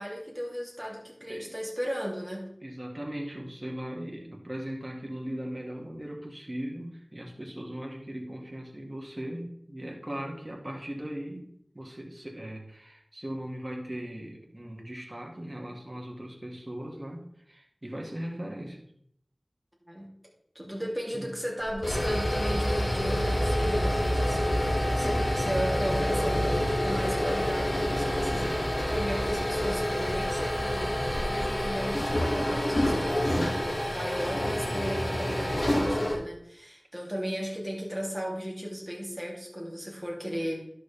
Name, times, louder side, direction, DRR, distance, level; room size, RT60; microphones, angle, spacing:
voice 1, 0.0-2.5 19.8-20.1 20.5-40.7, equal, 10° right, -3 dB, 2.9 m, -36 dB
voice 2, 2.6-11.5 11.7-18.9 21.1-21.3 25.0-25.3, right 1 dB, 35° right, 0 dB, 2.1 m, -38 dB
sound 1, 21.6-36.2, equal, 70° left, 2.6 m, -27 dB
11.0 x 6.6 x 3.4 m, 0.68 s
wide cardioid pair, 50°, 0 cm